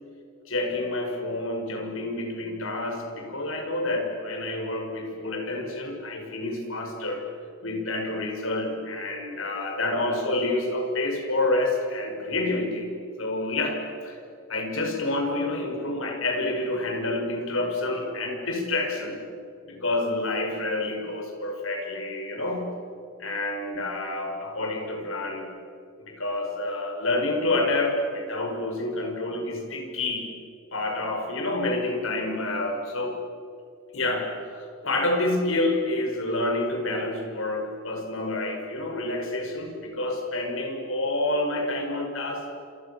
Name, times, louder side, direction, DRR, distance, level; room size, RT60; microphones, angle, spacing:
voice 1, 0.5-7.2 7.6-12.9 13.2-14.2 14.5-19.2 19.7-22.7 23.2-25.5 26.1-30.3 30.7-33.2 33.9-42.5, left 2 dB, 65° left, 2 dB, 5.8 m, -28 dB
29.5 x 26.5 x 7.1 m, 2.6 s
head